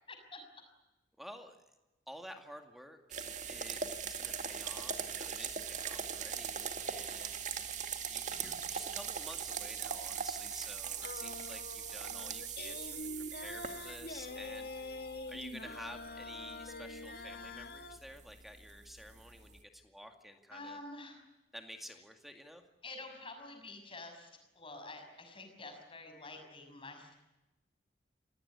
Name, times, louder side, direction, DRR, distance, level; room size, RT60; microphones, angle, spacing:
voice 1, 0.1-0.4 8.3-8.6 20.5-21.2 22.8-27.2, left 2 dB, 30° left, 4 dB, 6.2 m, -48 dB
voice 2, 1.2-1.6 2.1-7.6 8.1-20.8 21.5-22.6, equal, ahead, 5 dB, 2.2 m, -51 dB
sound 1, 3.1-19.6, right 7 dB, 40° right, 2.1 m, -41 dB
sound 2, 11.0-18.0, left 2 dB, 55° left, 1.8 m, -45 dB
27.0 x 18.0 x 9.8 m, 1.0 s
head